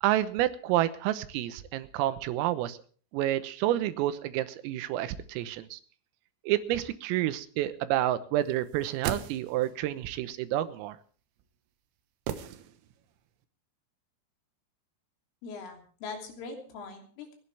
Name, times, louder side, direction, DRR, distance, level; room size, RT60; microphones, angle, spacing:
voice 1, 0.0-2.8 3.1-5.8 6.5-11.0, right 13 dB, 85° right, 12 dB, 3.7 m, -29 dB
sound 1, 8.7-9.9 12.3-13.2 13.4-13.5, right 9 dB, 70° right, 3.3 m, -37 dB
voice 2, 15.4-17.4, left 4 dB, 75° left, 3 dB, 5.6 m, -41 dB
29.5 x 11.5 x 3.4 m, 0.42 s
omnidirectional pair, 5.8 m